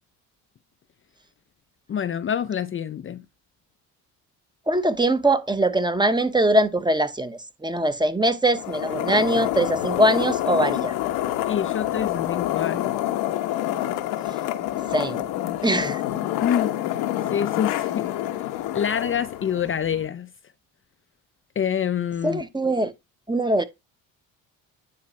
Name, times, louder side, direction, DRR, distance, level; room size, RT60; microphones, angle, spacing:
voice 1, 1.9-3.2 11.4-13.1 16.4-16.7 17.3-18.1 18.7-20.3 21.6-22.4, left 8 dB, 35° left, 0.5 m, -26 dB
voice 2, 4.7-10.9 14.9-15.3 15.6-16.0 22.2-22.9 23.3-23.6, right 1 dB, 10° right, 1.0 m, -22 dB
sound 1, 8.5-20.1, left 13 dB, 90° left, 1.1 m, -27 dB
9.6 x 3.2 x 4.2 m
supercardioid pair, 75°, 36 cm